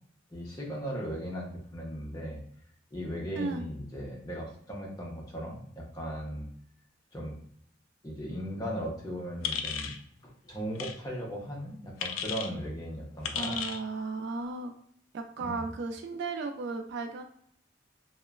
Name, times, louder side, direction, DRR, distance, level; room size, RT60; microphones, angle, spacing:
voice 1, 0.3-2.4 2.9-6.5 7.1-7.4 8.0-9.9 10.2-13.6 15.4-15.6, equal, 20° left, -2 dB, 0.6 m, -37 dB
voice 2, 3.4-3.7 13.4-14.7 15.1-17.2, right 3 dB, 55° right, 5 dB, 0.3 m, -35 dB
sound 1, 9.4-10.0 10.7-10.9 12.0-12.5 13.2-13.8, left 7 dB, 90° left, 0.3 m, -34 dB
2.9 x 2.1 x 2.3 m, 0.64 s
head